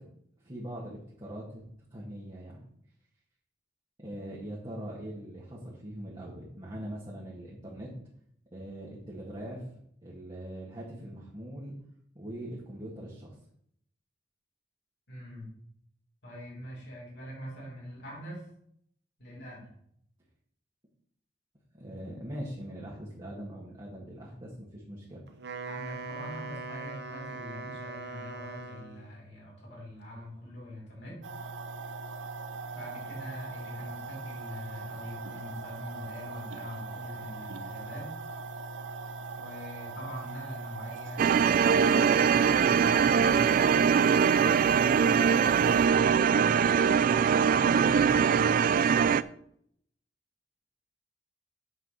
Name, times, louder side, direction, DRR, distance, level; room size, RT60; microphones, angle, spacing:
voice 1, 0.4-1.6 1.9-2.6 4.0-7.9 8.5-11.7 12.1-13.4 21.7-25.2, right 1 dB, 25° right, -5 dB, 2.0 m, -42 dB
voice 2, 15.1-15.5 16.2-18.4 19.2-19.7 25.7-31.2 32.7-38.1 39.3-43.9 45.0-46.8 47.4-48.8, equal, 65° left, -4 dB, 4.2 m, -43 dB
Wind instrument woodwind instrument, 25.3-29.1, right 3 dB, 65° right, 1.0 m, -40 dB
sound 1, 31.2-45.9, right 3 dB, 90° right, 0.8 m, -40 dB
sound 2, 41.2-49.2, right 7 dB, 50° right, 0.3 m, -22 dB
8.0 x 5.3 x 6.6 m, 0.68 s
head